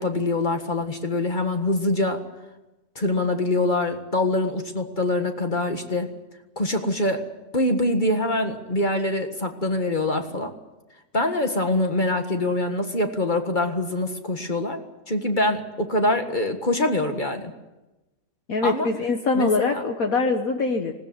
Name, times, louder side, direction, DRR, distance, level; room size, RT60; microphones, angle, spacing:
voice 1, 0.0-2.2 2.9-6.1 6.5-7.3 7.5-10.5 11.1-14.8 15.1-17.5 18.6-18.9 19.3-19.8, left 2 dB, 30° left, 6 dB, 1.8 m, -24 dB
voice 2, 18.5-20.9, left 3 dB, 60° left, 4 dB, 1.7 m, -23 dB
20.0 x 17.5 x 9.6 m, 1.0 s
omnidirectional pair, 1.8 m